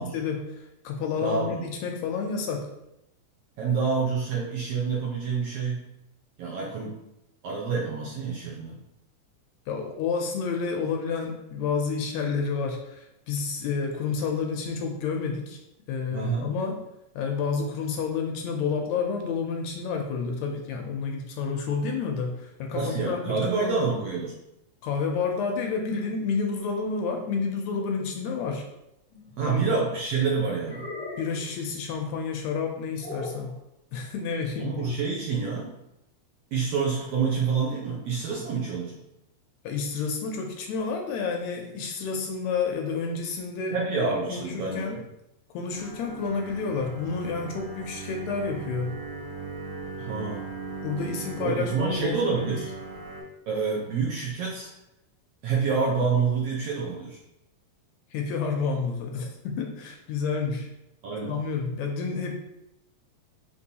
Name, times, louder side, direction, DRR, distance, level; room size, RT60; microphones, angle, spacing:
voice 1, 0.0-2.7 9.7-15.6 15.9-16.8 17.1-23.7 24.8-28.7 29.4-29.6 31.2-33.6 33.9-34.9 39.6-45.0 45.5-49.0 50.8-52.6 58.1-60.7 61.3-62.3, left 5 dB, 80° left, 2 dB, 1.7 m, -30 dB
voice 2, 1.2-1.6 3.6-5.9 6.4-7.0 7.4-8.8 16.1-16.5 22.7-24.3 29.4-30.9 34.6-35.7 36.5-38.9 43.7-45.0 50.0-50.4 51.4-52.7 53.5-54.7 55.4-57.2 61.0-61.4, right 5 dB, 70° right, -4 dB, 1.5 m, -27 dB
sound 1, 29.1-29.9 30.6-31.5 33.0-33.5, left 2 dB, 50° left, 0.5 m, -39 dB
sound 2, 45.7-53.2, right 4 dB, 50° right, 1.6 m, -38 dB
5.2 x 2.9 x 2.8 m, 0.87 s
omnidirectional pair, 3.3 m